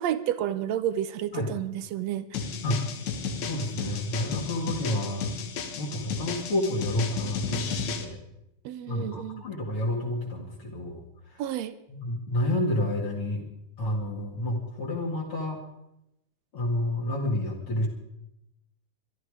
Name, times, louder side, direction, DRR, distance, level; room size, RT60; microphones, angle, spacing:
voice 1, 0.0-2.5 8.6-9.4 11.4-11.7, right 11 dB, 75° right, 13 dB, 1.6 m, -30 dB
sound 1, 2.3-8.0, left 5 dB, 65° left, 2.6 m, -33 dB
voice 2, 3.4-5.3 5.8-8.2 8.9-11.0 11.3-11.4 11.9-13.4 13.8-15.6 16.5-17.9, left 1 dB, 45° left, -2 dB, 2.9 m, -29 dB
23.5 x 12.0 x 4.9 m, 0.85 s
omnidirectional pair, 3.7 m